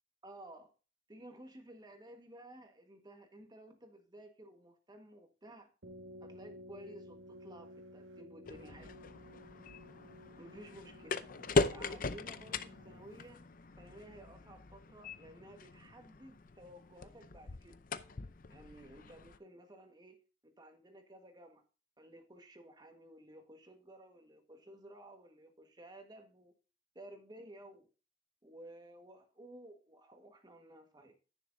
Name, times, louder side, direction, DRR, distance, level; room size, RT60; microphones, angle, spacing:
voice 1, 0.2-0.7 1.1-5.7 6.2-8.9 10.4-11.1 11.7-13.5 13.8-17.8 18.5-20.2 20.4-21.6 22.0-26.5 26.9-27.9 28.4-31.1, right 1 dB, 20° right, 1.5 m, -54 dB
sound 1, 5.8-13.3, left 1 dB, 85° right, 1.7 m, -55 dB
sound 2, 8.5-19.4, left 3 dB, 50° left, 0.6 m, -40 dB
10.5 x 9.8 x 2.7 m
head